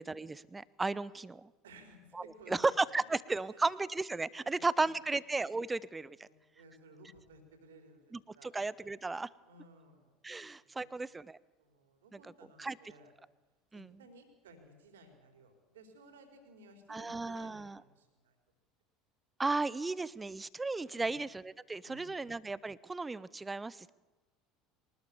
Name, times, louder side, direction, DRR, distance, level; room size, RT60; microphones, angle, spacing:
voice 1, 0.0-1.5 2.1-6.3 8.1-9.3 10.2-11.4 12.6-12.8 13.7-13.9 16.9-17.8 19.4-23.9, right 3 dB, 15° right, 19 dB, 0.9 m, -35 dB
voice 2, 1.6-2.8 3.4-3.8 4.4-5.0 6.1-8.5 9.4-10.2 10.6-10.9 11.6-13.1 13.7-18.4 20.9-21.2 21.8-22.4, right 1 dB, 70° right, 5 dB, 4.2 m, -58 dB
23.0 x 19.5 x 7.1 m, 1.2 s
figure-of-eight pair, 70°, 0 cm